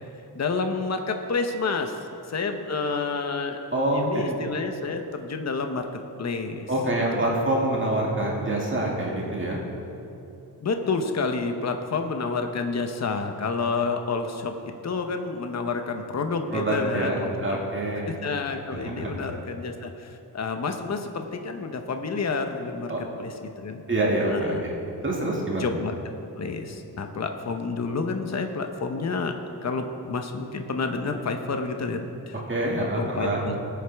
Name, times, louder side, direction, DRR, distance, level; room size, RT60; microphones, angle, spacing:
voice 1, 0.3-2.0 2.3-3.6 3.9-6.7 7.1-7.3 10.6-14.6 14.8-17.6 18.0-23.8 24.2-24.6 25.6-26.0 26.4-29.4 29.6-32.4 32.8-33.6, left 4 dB, 40° left, 6 dB, 0.9 m, -29 dB
voice 2, 3.7-4.2 6.7-9.6 16.5-18.2 18.7-19.3 22.9-23.0 23.9-24.7 25.0-25.7 32.5-33.4, right 1 dB, 30° right, -3 dB, 2.1 m, -26 dB
20.0 x 8.3 x 3.5 m, 2.8 s
wide cardioid pair, 105°, 39 cm